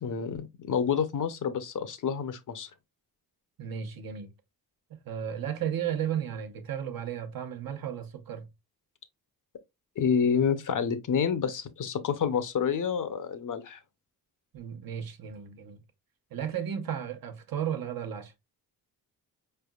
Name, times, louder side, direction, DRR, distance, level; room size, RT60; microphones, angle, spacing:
voice 1, 0.0-2.7 10.0-13.8, left 7 dB, 55° left, 0.7 m, -28 dB
voice 2, 3.6-4.3 5.0-8.5 14.5-15.8 16.3-18.3, right 9 dB, 65° right, 0.9 m, -34 dB
4.8 x 3.3 x 2.3 m
cardioid pair, 95°, 38 cm